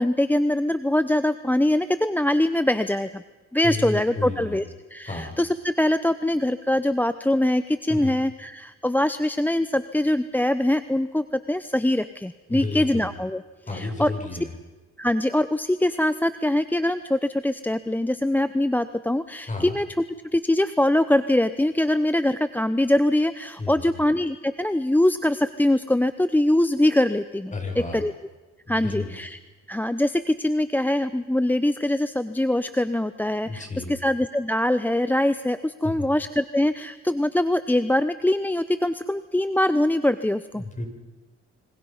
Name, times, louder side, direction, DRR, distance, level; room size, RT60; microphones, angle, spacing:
voice 1, 0.0-3.2 3.5-4.6 4.9-13.4 13.7-14.1 15.0-19.9 20.3-28.1 28.7-29.4 29.7-40.6, left 1 dB, 5° left, 12 dB, 0.7 m, -23 dB
voice 2, 3.6-4.6 5.1-5.3 7.9-8.1 12.5-13.1 13.7-14.5 19.5-19.8 23.6-24.0 27.5-28.0 28.7-29.1 33.4-33.9 35.8-36.1 40.5-40.9, left 3 dB, 25° left, 4 dB, 6.2 m, -32 dB
27.5 x 25.5 x 5.6 m, 1.2 s
cardioid pair, 90°, 30 cm